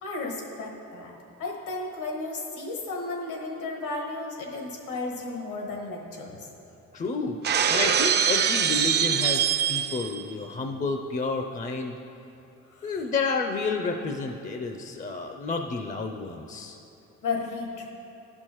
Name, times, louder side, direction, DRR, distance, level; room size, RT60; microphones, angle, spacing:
voice 1, 0.0-6.5 12.7-13.0 17.2-17.9, left 3 dB, 85° left, 0 dB, 1.4 m, -34 dB
voice 2, 6.9-7.4 7.7-12.0 12.8-16.8, left 4 dB, 25° left, 4 dB, 0.4 m, -30 dB
Shatter, 7.4-10.2, right 8 dB, 35° right, 0.4 m, -23 dB
10.5 x 6.4 x 3.0 m, 2.8 s
cardioid pair, 90°, 30 cm